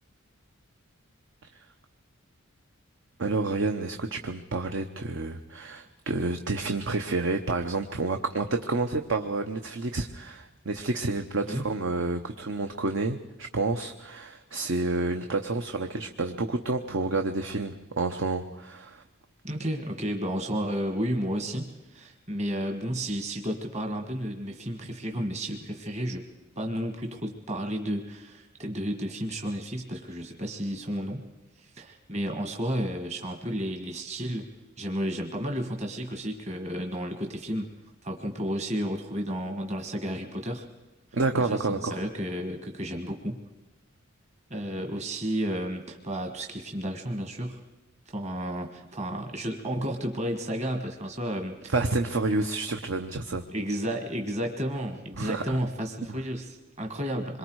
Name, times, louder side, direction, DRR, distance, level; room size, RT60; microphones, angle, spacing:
voice 1, 3.2-19.0 41.1-42.0 51.7-53.4 55.2-55.6, right 3 dB, 65° right, 6 dB, 0.9 m, -29 dB
voice 2, 19.4-26.2 26.6-31.2 31.6-34.5 34.8-37.7 38.0-40.6 41.4-43.4 44.5-47.6 48.1-51.7 53.5-57.4, equal, 35° right, 4 dB, 1.5 m, -32 dB
26.0 x 22.5 x 4.7 m, 1.1 s
head